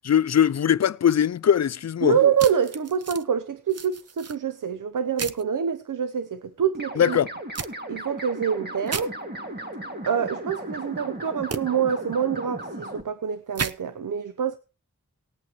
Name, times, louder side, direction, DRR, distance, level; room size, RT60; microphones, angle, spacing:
voice 1, 0.0-2.2 7.0-7.3, left 9 dB, 60° left, 0.5 m, -21 dB
voice 2, 2.0-7.2 7.9-9.1 10.1-14.6, right 7 dB, 90° right, 0.7 m, -26 dB
sound 1, 2.4-3.2 3.7-4.4 5.2-5.4 7.5-7.7 8.9-9.1 11.5-11.6 13.5-13.7, right 5 dB, 55° right, 0.7 m, -32 dB
sound 2, 6.7-13.0, right 1 dB, 35° right, 2.1 m, -36 dB
19.5 x 8.4 x 3.1 m
wide cardioid pair, 70°, 31 cm